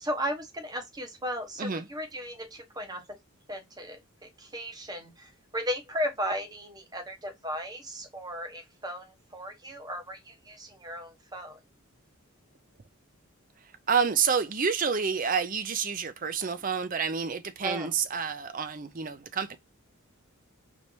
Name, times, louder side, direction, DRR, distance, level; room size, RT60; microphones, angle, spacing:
voice 1, 0.0-3.2 3.5-11.6 17.6-17.9, equal, 20° right, 1.0 m, -36 dB
voice 2, 13.6-19.6, right 6 dB, 40° right, 0.5 m, -29 dB
4.4 x 3.3 x 2.7 m
head